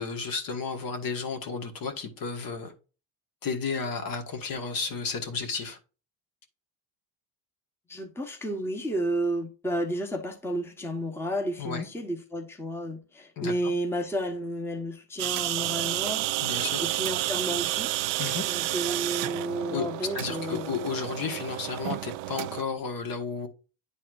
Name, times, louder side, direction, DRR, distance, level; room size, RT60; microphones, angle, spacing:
voice 1, 0.0-2.7 3.4-5.8 11.6-11.9 13.4-13.7 16.4-16.8 18.2-18.5 19.7-23.5, left 5 dB, 45° left, 1.5 m, -33 dB
voice 2, 7.9-16.2 16.8-17.9 18.5-20.7, right 1 dB, 5° left, 1.1 m, -32 dB
sound 1, 15.2-22.6, right 17 dB, 70° right, 0.6 m, -30 dB
9.7 x 4.2 x 2.5 m
supercardioid pair, 90°, 46 cm